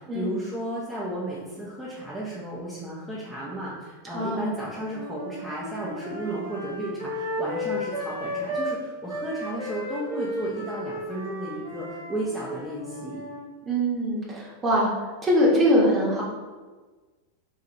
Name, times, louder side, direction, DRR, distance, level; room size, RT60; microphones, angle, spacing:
voice 1, 0.0-13.2, right 1 dB, 5° right, -8 dB, 0.7 m, -34 dB
voice 2, 4.1-4.5 13.7-14.9 15.2-16.2, equal, 20° right, -4 dB, 1.1 m, -22 dB
sound 1, 4.9-8.8 9.1-13.5, left 1 dB, 80° right, 1.3 m, -34 dB
4.0 x 2.5 x 2.9 m, 1.3 s
figure-of-eight pair, 90°, 0 cm